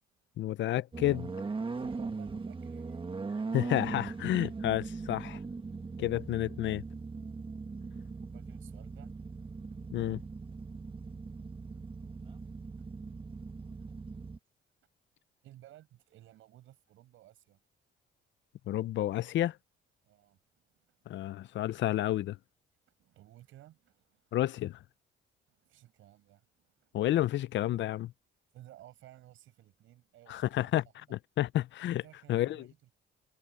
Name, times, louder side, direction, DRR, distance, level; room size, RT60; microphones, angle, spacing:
voice 1, 0.4-1.3 3.5-5.4 6.0-6.8 9.9-10.2 18.7-19.6 21.1-22.4 24.3-24.8 26.9-28.1 30.3-30.8 31.1-32.0 32.3-32.7, left 13 dB, 70° left, 0.6 m, -30 dB
sound 1, 0.9-14.4, right 4 dB, 25° right, 1.5 m, -40 dB
voice 2, 1.7-3.7 7.5-7.7 8.2-9.6 15.4-17.6 20.0-21.3 23.0-24.4 25.5-27.0 28.5-30.7 31.1-31.2 32.0-33.0, right 14 dB, 85° right, 7.2 m, -57 dB
cardioid pair, 90°, 20 cm